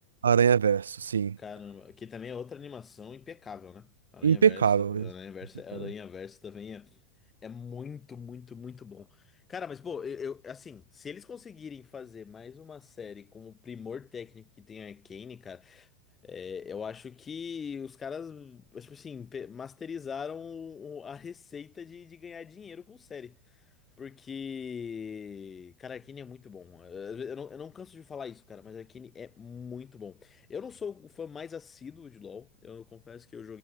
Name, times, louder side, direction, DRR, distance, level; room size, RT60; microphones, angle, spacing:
voice 1, 0.2-1.4 4.2-5.1, right 7 dB, 85° right, 0.4 m, -23 dB
voice 2, 1.4-7.0 7.4-15.9 16.2-23.4 24.0-33.6, left 6 dB, 25° left, 2.0 m, -42 dB
hypercardioid pair, 100°, 0 cm